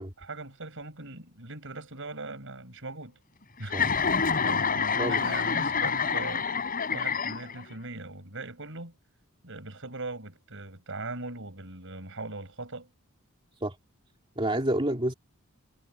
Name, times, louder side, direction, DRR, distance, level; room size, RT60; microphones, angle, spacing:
voice 1, 0.2-3.2 3.6-6.5 6.9-9.0 9.4-12.9, right 2 dB, 60° right, 7.5 m, -40 dB
Chuckle chortle, 3.7-7.7, left 5 dB, 40° left, 6.0 m, -27 dB
voice 2, 5.0-5.3 13.6-13.8 14.4-15.1, right 1 dB, 25° right, 3.0 m, -28 dB
head